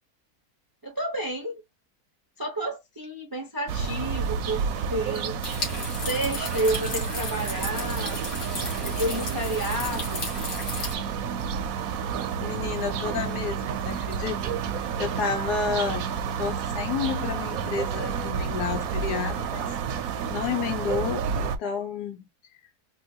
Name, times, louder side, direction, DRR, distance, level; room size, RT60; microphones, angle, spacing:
voice 1, 0.8-1.6 2.4-5.4 5.9-8.2 8.8-10.3, right 1 dB, 35° right, 0.3 m, -30 dB
sound 1, 3.7-21.6, right 6 dB, 70° right, 0.9 m, -30 dB
sound 2, 5.4-11.0, left 2 dB, 65° left, 1.7 m, -34 dB
voice 2, 12.4-14.4 15.0-16.1 16.4-19.7 20.3-22.3, left 6 dB, 80° left, 1.2 m, -30 dB
3.7 x 2.2 x 2.7 m
omnidirectional pair, 1.7 m